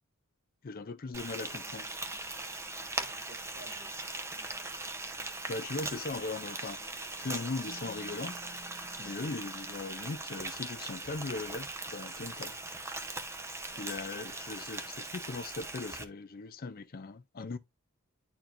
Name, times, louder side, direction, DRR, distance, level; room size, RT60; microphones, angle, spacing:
voice 1, 0.6-1.9 5.5-6.8 7.2-8.4 9.0-12.6 13.7-17.6, left 3 dB, 40° left, 0.5 m, -39 dB
sound 1, 1.0-9.5, left 1 dB, 5° left, 1.4 m, -66 dB
Frying (food), 1.1-16.0, right 2 dB, 10° right, 0.7 m, -40 dB
voice 2, 2.8-4.8 9.2-9.3 13.7-14.0 14.5-14.7, right 3 dB, 55° right, 1.7 m, -57 dB
Keyboard (musical), 7.7-10.9, right 2 dB, 30° right, 2.1 m, -56 dB
10.5 x 4.3 x 2.5 m
head